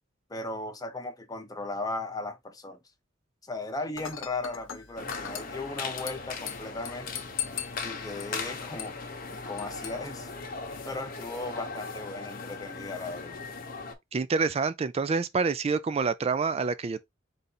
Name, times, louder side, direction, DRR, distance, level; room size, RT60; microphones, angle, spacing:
voice 1, 0.3-2.8 3.4-7.3 7.8-9.0 9.3-10.3 10.8-13.4, left 2 dB, 20° left, 0.7 m, -37 dB
Dishes pots and pans / Glass, 4.0-11.0, left 10 dB, 85° left, 0.8 m, -41 dB
sound 1, 5.0-13.9, left 4 dB, 50° left, 0.8 m, -39 dB
voice 2, 14.1-17.0, right 4 dB, 30° right, 0.3 m, -27 dB
4.0 x 2.5 x 4.1 m
head